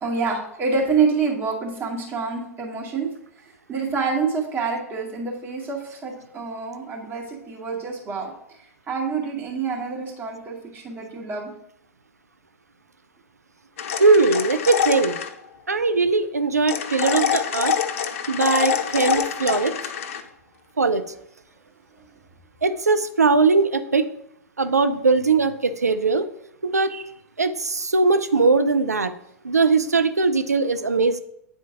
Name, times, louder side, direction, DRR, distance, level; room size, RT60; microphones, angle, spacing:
voice 1, 0.0-3.1 3.7-8.3 8.9-11.5 18.7-18.8, right 5 dB, 25° right, -3 dB, 2.1 m, -27 dB
sound 1, 13.8-15.3 16.7-20.2, left 8 dB, 55° left, 0.7 m, -25 dB
voice 2, 14.0-15.2 15.7-17.7 18.3-19.7 20.8-21.0 22.6-24.1 24.6-26.3 26.6-27.0 27.4-29.1 29.4-31.2, right 4 dB, 85° right, 10 dB, 0.5 m, -20 dB
9.0 x 3.9 x 3.7 m, 0.76 s
figure-of-eight pair, 95°, 8 cm